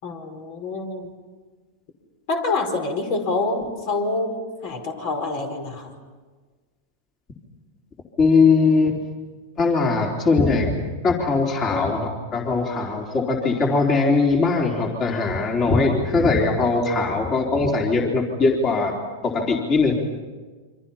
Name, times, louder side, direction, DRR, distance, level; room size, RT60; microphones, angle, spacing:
voice 1, 0.0-1.1 2.3-5.9 11.7-11.9, left 3 dB, 60° left, 5 dB, 4.7 m, -27 dB
voice 2, 8.2-9.0 9.6-10.8 11.0-18.9 19.2-20.0, left 4 dB, 30° left, 0 dB, 3.9 m, -20 dB
29.0 x 25.5 x 5.7 m, 1.4 s
hypercardioid pair, 125°, 0 cm